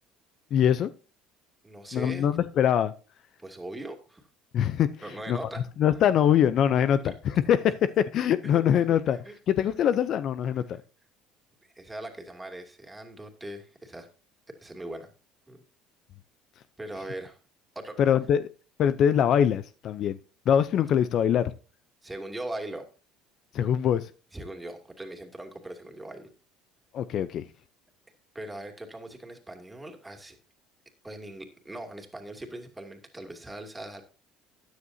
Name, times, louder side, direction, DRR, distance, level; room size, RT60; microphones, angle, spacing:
voice 1, 0.5-0.9 1.9-2.9 4.5-5.0 5.3-5.4 5.8-9.2 9.5-10.8 18.0-18.5 18.8-20.2 20.5-21.5 23.5-24.1 26.9-27.4, left 9 dB, 55° left, 0.6 m, -23 dB
voice 2, 1.6-2.3 3.4-4.2 5.0-5.6 7.0-7.1 8.5-8.8 9.2-9.4 11.7-14.1 14.6-15.1 15.5-15.6 16.8-17.4 17.7-18.0 22.0-22.8 24.3-26.3 28.3-30.4 31.0-34.0, right 1 dB, 10° right, 2.6 m, -40 dB
14.0 x 9.6 x 2.8 m
supercardioid pair, 95°, 0 cm